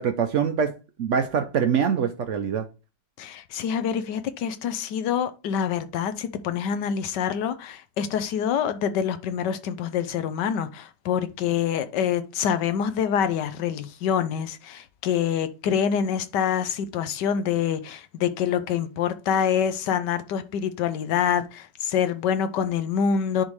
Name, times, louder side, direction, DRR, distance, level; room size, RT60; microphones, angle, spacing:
voice 1, 0.0-2.7, right 7 dB, 90° right, 0.6 m, -24 dB
voice 2, 3.2-23.4, left 8 dB, 70° left, 1.2 m, -26 dB
10.0 x 3.6 x 3.2 m
omnidirectional pair, 2.1 m